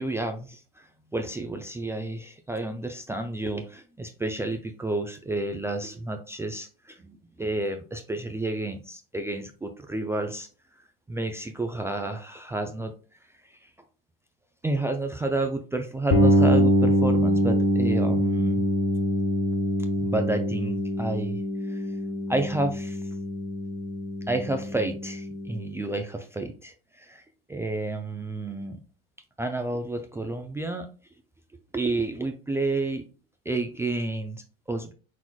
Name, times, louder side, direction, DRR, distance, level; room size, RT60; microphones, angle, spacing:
voice 1, 0.0-10.5 11.1-12.9 13.4-13.7 14.6-18.6 20.0-21.4 21.7-21.9 22.3-23.1 24.3-27.2 27.5-28.8 29.4-30.9 31.7-33.0 33.5-34.9, right 2 dB, 10° right, 5 dB, 0.4 m, -30 dB
sound 1, 16.1-25.8, equal, 65° left, 1.5 m, -24 dB
4.4 x 3.9 x 2.2 m, 0.37 s
hypercardioid pair, 80°, 29 cm